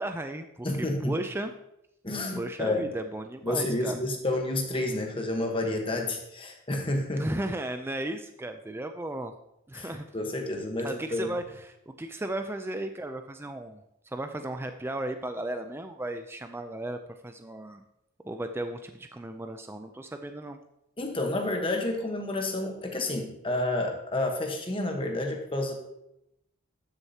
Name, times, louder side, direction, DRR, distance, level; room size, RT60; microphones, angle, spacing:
voice 1, 0.0-1.5 2.4-4.0 7.2-9.3 9.7-10.0 10.8-17.0 17.2-17.8 18.2-20.6, right 1 dB, 10° right, 7 dB, 0.3 m, -35 dB
voice 2, 0.6-1.2 2.0-2.9 3.4-7.3 9.7-11.3 21.0-25.8, left 1 dB, 25° left, 2 dB, 1.1 m, -30 dB
12.0 x 6.6 x 2.8 m, 0.83 s
head